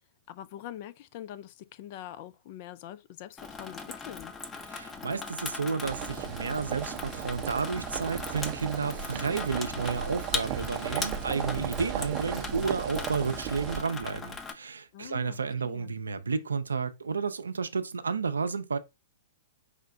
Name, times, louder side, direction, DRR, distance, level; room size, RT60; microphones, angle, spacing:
voice 1, 0.3-4.3 14.9-16.0, left 12 dB, 50° left, 0.4 m, -44 dB
Water tap faucet / Sink (filling or washing), 3.4-14.5, left 4 dB, 15° left, 0.7 m, -39 dB
voice 2, 4.7-18.8, right 5 dB, 85° right, 0.5 m, -31 dB
sound 1, 5.8-13.8, right 10 dB, 40° right, 0.6 m, -36 dB
5.0 x 2.2 x 3.8 m
hypercardioid pair, 110°, 0 cm